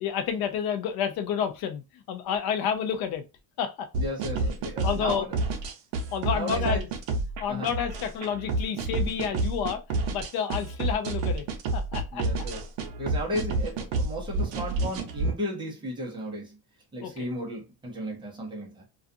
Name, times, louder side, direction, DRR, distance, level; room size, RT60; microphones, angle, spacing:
voice 1, 0.0-3.2 3.6-3.9 4.4-4.5 4.8-5.3 6.1-6.9 7.4-11.5 11.7-12.3 17.0-17.3, left 8 dB, 50° left, 0.5 m, -30 dB
sound 1, 3.9-15.3, right 2 dB, 60° right, 0.7 m, -29 dB
voice 2, 4.0-5.4 6.3-6.8 7.5-7.7 12.1-12.7 13.0-16.6 16.9-18.8, equal, 10° right, 0.6 m, -34 dB
2.4 x 2.3 x 2.6 m
cardioid pair, 175°, 49 cm